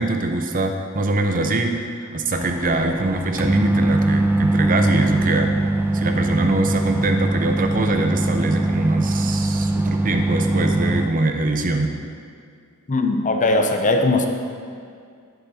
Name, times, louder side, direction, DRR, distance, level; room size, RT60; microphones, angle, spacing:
voice 1, 0.0-5.5 5.9-11.9, right 2 dB, 40° right, 5 dB, 0.8 m, -23 dB
sound 1, 2.3-11.1, right 2 dB, 10° right, 0.3 m, -21 dB
voice 2, 12.9-14.3, left 2 dB, 35° left, 5 dB, 0.7 m, -19 dB
11.0 x 7.9 x 4.3 m, 2.2 s
head